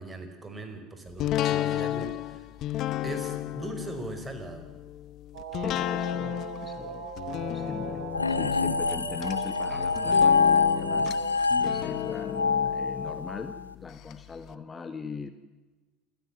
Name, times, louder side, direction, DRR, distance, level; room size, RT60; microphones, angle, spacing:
voice 1, 0.0-2.5 3.0-4.7 9.7-9.8, right 2 dB, 20° right, 7 dB, 5.2 m, -39 dB
sound 1, 1.2-14.1 14.5-14.6, left 13 dB, 50° left, 0.9 m, -33 dB
sound 2, 5.3-11.3, right 5 dB, 70° right, 3.7 m, -39 dB
voice 2, 5.6-7.1 7.5-11.1 11.6-15.3, left 5 dB, 25° left, 9 dB, 1.5 m, -40 dB
sound 3, 8.1-13.6, left 5 dB, 90° left, 0.7 m, -25 dB
28.5 x 15.5 x 7.5 m, 1.2 s
figure-of-eight pair, 70°, 0 cm